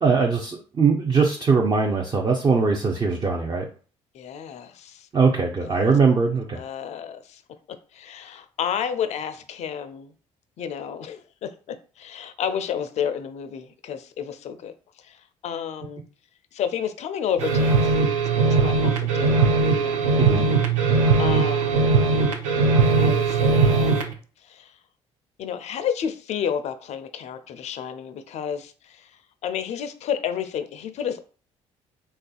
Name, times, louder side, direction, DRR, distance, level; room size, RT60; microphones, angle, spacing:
voice 1, 0.0-3.7 5.1-6.6 20.2-20.4, right 4 dB, 25° right, 0.5 m, -21 dB
voice 2, 4.1-5.1 5.6-5.7 6.5-7.4 7.9-10.1 10.6-14.7 15.1-15.2 15.4-16.0 16.5-18.0 18.5-19.5 19.7-20.0 21.2-22.0 23.0-24.1 24.5-24.7 25.4-29.0 29.4-31.2, left 8 dB, 45° left, 0.4 m, -31 dB
sound 1, 17.4-24.1, right 4 dB, 80° right, 0.4 m, -20 dB
3.2 x 2.4 x 2.2 m
figure-of-eight pair, 50°, 16 cm